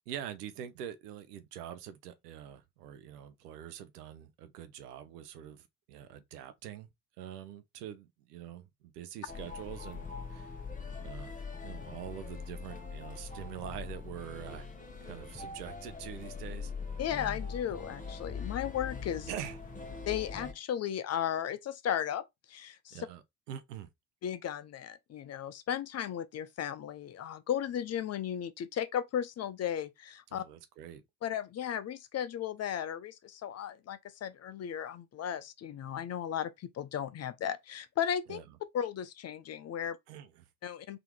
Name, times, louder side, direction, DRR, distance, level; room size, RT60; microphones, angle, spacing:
voice 1, 0.1-6.9 7.2-10.5 11.0-11.4 11.6-14.7 15.0-16.7 19.3-19.6 22.9-23.9 30.3-31.0 38.3-38.4 40.1-40.5, right 10 dB, 75° right, 0.8 m, -44 dB
sound 1, 9.3-20.5, left 5 dB, 15° left, 1.2 m, -42 dB
voice 2, 17.0-19.3 20.1-22.2 22.5-23.1 24.2-30.4 31.2-38.4 38.7-40.0 40.6-41.0, left 9 dB, 35° left, 0.5 m, -35 dB
3.8 x 2.8 x 3.5 m
figure-of-eight pair, 50°, 47 cm